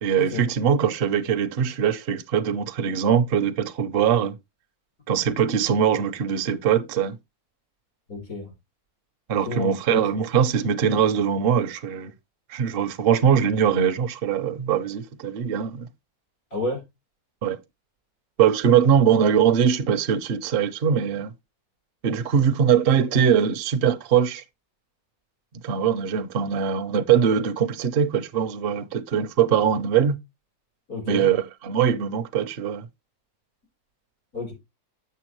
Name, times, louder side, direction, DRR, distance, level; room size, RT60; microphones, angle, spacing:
voice 1, 0.0-4.3 5.1-7.2 9.3-12.1 12.5-15.9 17.4-17.6 18.4-21.3 22.0-24.4 25.6-30.2 31.1-32.9, right 8 dB, 55° right, 0.7 m, -22 dB
voice 2, 8.1-8.5 9.5-10.0 16.5-16.8 30.9-31.3 34.3-34.5, left 3 dB, 75° left, 4.5 m, -30 dB
6.9 x 6.8 x 3.0 m
omnidirectional pair, 1.5 m